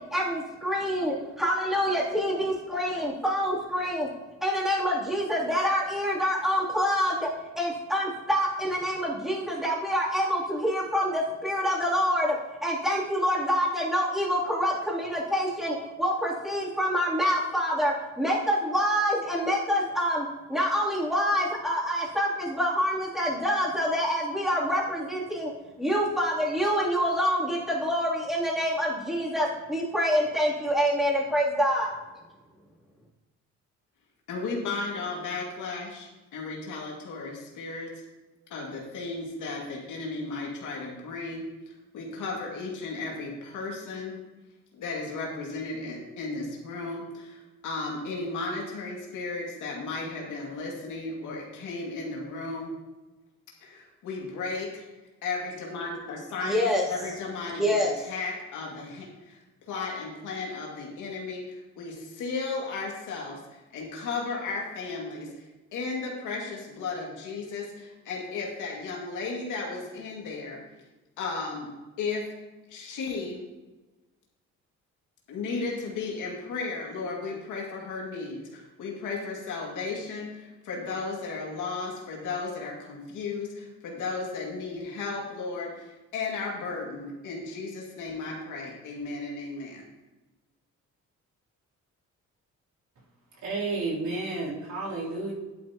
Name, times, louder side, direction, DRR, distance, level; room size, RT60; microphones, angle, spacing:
voice 1, 0.1-4.1 4.4-7.3 7.6-12.4 12.6-25.5 25.8-31.9 56.4-56.8 57.6-57.9, equal, ahead, -5 dB, 3.0 m, -26 dB
voice 2, 34.3-37.9 38.5-44.2 44.7-52.7 53.6-54.9 55.2-59.4 59.7-65.5 65.7-70.6 71.2-71.7 72.0-72.3 72.7-73.4 75.3-89.8, left 3 dB, 85° left, -2 dB, 2.3 m, -35 dB
voice 3, 93.4-95.3, right 3 dB, 70° right, -6 dB, 3.5 m, -31 dB
11.0 x 8.7 x 2.9 m, 1.1 s
cardioid pair, 90°, 30 cm